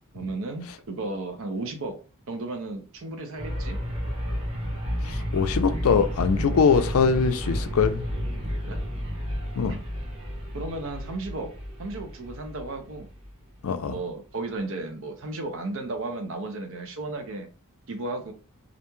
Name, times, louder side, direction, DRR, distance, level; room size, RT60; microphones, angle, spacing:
voice 1, 0.1-2.0 2.3-3.8 8.6-8.8 9.7-9.8 10.5-11.5 11.8-13.1 13.8-17.5 17.9-18.3, right 2 dB, 65° right, 0.6 m, -34 dB
sound 1, 3.4-13.3, equal, 30° right, 0.8 m, -31 dB
voice 2, 5.0-8.0 9.6-9.7 13.6-13.9, left 5 dB, 70° left, 0.4 m, -22 dB
2.5 x 2.2 x 2.9 m
head